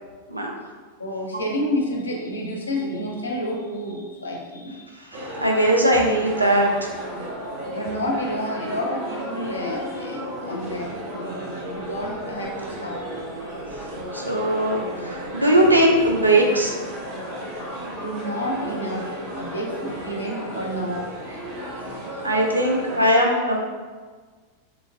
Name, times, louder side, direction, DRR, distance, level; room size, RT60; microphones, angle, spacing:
voice 1, 1.0-5.0 7.2-13.1 18.0-21.1, equal, 75° left, -1 dB, 0.5 m, -30 dB
sound 1, 5.1-23.1, equal, 50° right, 0.7 m, -34 dB
voice 2, 5.1-6.7 14.1-16.8 22.2-23.7, right 1 dB, 85° right, -1 dB, 0.4 m, -19 dB
3.0 x 2.5 x 2.5 m, 1.5 s
figure-of-eight pair, 90°, 0 cm